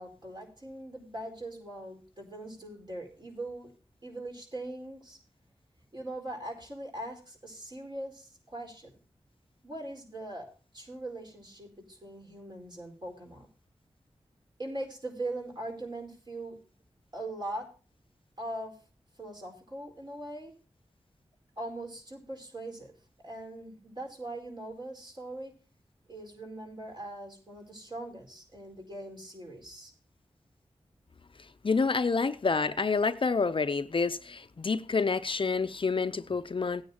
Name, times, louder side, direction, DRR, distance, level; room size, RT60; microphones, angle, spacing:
voice 1, 0.0-3.7 4.0-5.2 5.9-8.9 9.6-10.5 10.7-13.5 14.6-16.6 17.1-17.7 18.4-18.7 19.2-20.5 21.6-22.9 23.2-25.5 26.1-29.9, right 1 dB, 40° right, 4.7 m, -41 dB
voice 2, 31.6-36.8, left 4 dB, 50° left, 0.6 m, -28 dB
17.5 x 9.4 x 2.9 m
cardioid pair, 55°, 11 cm